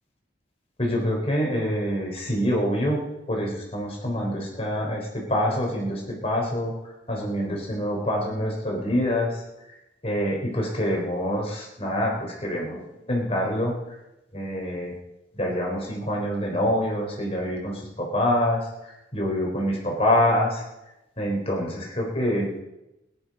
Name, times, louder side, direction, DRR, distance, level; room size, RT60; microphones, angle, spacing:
voice 1, 0.8-3.0 3.3-6.7 7.1-9.3 10.0-12.8 13.1-13.8 14.3-14.9 15.3-18.7 19.1-20.6 21.2-22.5, equal, 30° left, -1 dB, 3.9 m, -26 dB
17.5 x 10.5 x 5.3 m, 0.93 s
head